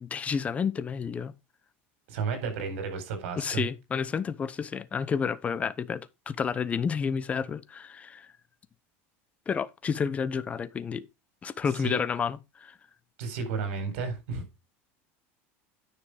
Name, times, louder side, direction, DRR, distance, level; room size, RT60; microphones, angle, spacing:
voice 1, 0.0-1.3 3.4-8.3 9.5-11.1 11.4-12.8, left 6 dB, 20° left, 0.7 m, -30 dB
voice 2, 2.1-3.6 11.8-12.0 13.2-14.4, right 5 dB, 80° right, 4.1 m, -32 dB
10.0 x 5.9 x 4.9 m
supercardioid pair, 150°, 7 cm